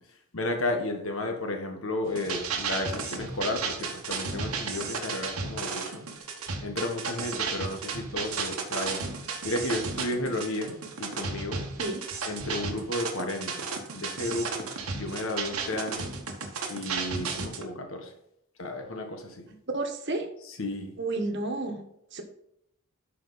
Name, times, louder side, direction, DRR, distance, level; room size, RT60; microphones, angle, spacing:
voice 1, 0.3-6.0 6.6-9.0 9.4-11.6 12.3-13.7 13.9-16.1 16.7-18.1 18.6-19.4 20.6-21.0, left 1 dB, 70° left, 4 dB, 1.4 m, -33 dB
sound 1, 2.0-17.6, right 4 dB, 85° right, 1.4 m, -34 dB
voice 2, 19.5-20.3 21.0-21.8 22.1-22.2, right 2 dB, 50° right, 4 dB, 1.4 m, -31 dB
11.5 x 4.9 x 4.1 m, 0.77 s
head